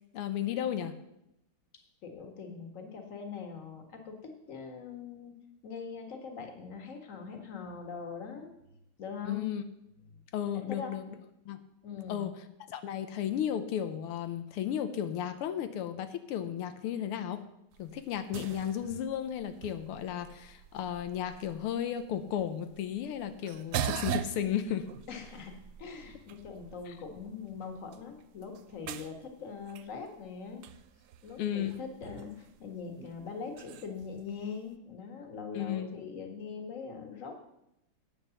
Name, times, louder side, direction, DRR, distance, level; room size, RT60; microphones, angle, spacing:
voice 1, 0.1-1.0 9.3-9.6 10.3-11.0 11.5-11.6 12.1-12.4 12.7-17.4 17.8-24.9 26.9-27.0 31.4-31.8 35.5-36.0, left 10 dB, 85° left, 9 dB, 1.7 m, -34 dB
voice 2, 2.0-5.4 5.6-8.5 9.0-9.5 10.1-10.2 10.5-10.9 11.8-12.3 25.1-25.5 25.8-30.6 31.2-37.4, left 5 dB, 40° left, 4 dB, 1.9 m, -42 dB
sound 1, 17.7-34.7, right 9 dB, 75° right, 0.9 m, -43 dB
9.8 x 8.8 x 7.1 m, 0.83 s
omnidirectional pair, 2.4 m